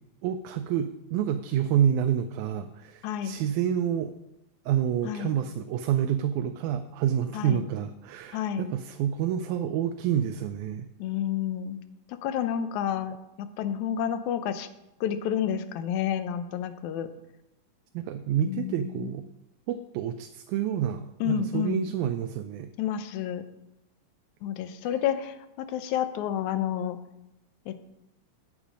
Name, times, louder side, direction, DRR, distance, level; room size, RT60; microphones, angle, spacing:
voice 1, 0.2-4.1 4.7-10.9 17.9-19.2 19.7-22.7, right 9 dB, 85° right, 8 dB, 2.0 m, -28 dB
voice 2, 3.0-3.4 5.0-5.3 7.3-7.6 8.3-8.7 11.0-11.8 12.2-14.7 15.0-17.1 18.4-19.1 21.2-21.9 22.8-23.4 24.4-25.4 25.7-27.0 27.7-27.8, left 9 dB, 80° left, 10 dB, 2.1 m, -30 dB
8.6 x 8.2 x 5.0 m, 0.90 s
omnidirectional pair, 3.4 m